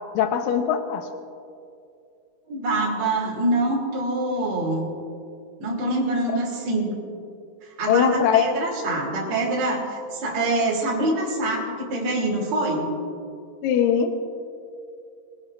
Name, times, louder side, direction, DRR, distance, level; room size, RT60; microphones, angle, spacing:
voice 1, 0.2-1.0 7.9-8.6 13.6-14.1, left 8 dB, 75° left, 6 dB, 2.3 m, -21 dB
voice 2, 2.5-4.9 5.6-7.0 7.6-12.9, right 2 dB, 50° right, -5 dB, 3.7 m, -25 dB
23.5 x 18.0 x 2.5 m, 2.5 s
omnidirectional pair, 4.5 m